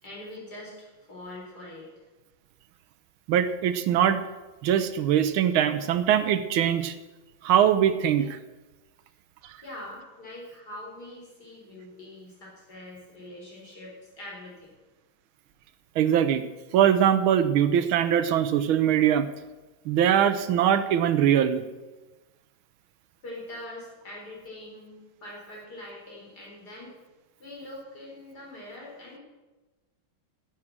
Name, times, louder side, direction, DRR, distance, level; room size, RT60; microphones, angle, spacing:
voice 1, 0.0-2.0 9.6-14.7 23.2-26.9 27.4-29.2, left 1 dB, 50° left, -4 dB, 4.7 m, -43 dB
voice 2, 3.3-4.2 4.6-6.9 7.4-8.4 16.0-16.4 16.7-19.3 19.9-21.6, right 9 dB, 80° right, 12 dB, 1.6 m, -22 dB
14.5 x 8.6 x 6.2 m, 1.2 s
omnidirectional pair, 2.3 m